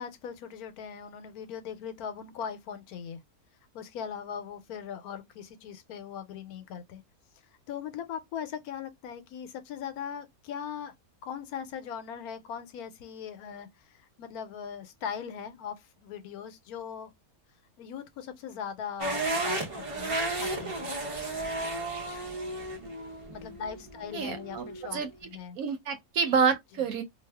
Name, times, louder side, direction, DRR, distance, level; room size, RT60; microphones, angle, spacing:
voice 1, 0.0-3.2 3.7-7.0 7.7-10.9 11.2-17.1 17.8-20.9 23.3-25.6, left 7 dB, 85° left, 1.1 m, -40 dB
sound 1, 19.0-25.1, right 2 dB, 35° right, 0.5 m, -34 dB
voice 2, 24.1-25.1 25.6-27.0, right 6 dB, 75° right, 1.1 m, -28 dB
2.7 x 2.3 x 3.3 m
omnidirectional pair, 1.6 m